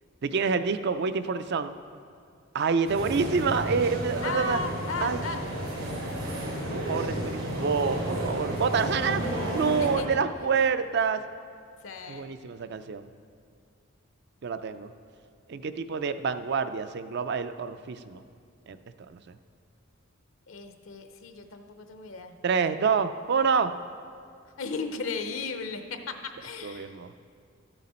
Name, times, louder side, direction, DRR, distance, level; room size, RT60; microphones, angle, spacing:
voice 1, 0.2-1.7 2.5-4.6 5.0-5.2 6.7-11.2 12.1-13.1 14.4-14.9 15.5-18.2 18.7-18.8 19.1-19.2 22.4-23.7 26.6-27.1, right 5 dB, 55° right, 11 dB, 0.4 m, -27 dB
sound 1, 2.8-10.0, right 1 dB, 80° right, 3.1 m, -32 dB
voice 2, 4.2-5.4 9.8-10.1 11.8-12.3 20.5-22.4 24.6-27.0, left 3 dB, 75° left, 7 dB, 0.7 m, -35 dB
13.0 x 8.0 x 4.3 m, 2.2 s
head